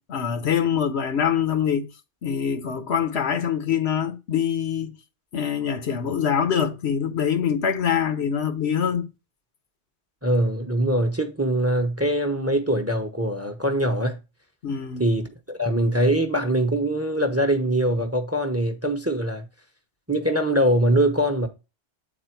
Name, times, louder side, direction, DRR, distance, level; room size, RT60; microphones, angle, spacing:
voice 1, 0.1-1.9 2.2-5.0 5.3-9.1 14.6-15.1, left 8 dB, 70° left, 1.1 m, -24 dB
voice 2, 10.2-14.2 15.0-19.4 20.1-21.5, right 1 dB, 15° right, 0.8 m, -23 dB
8.4 x 4.2 x 4.5 m
omnidirectional pair, 1.1 m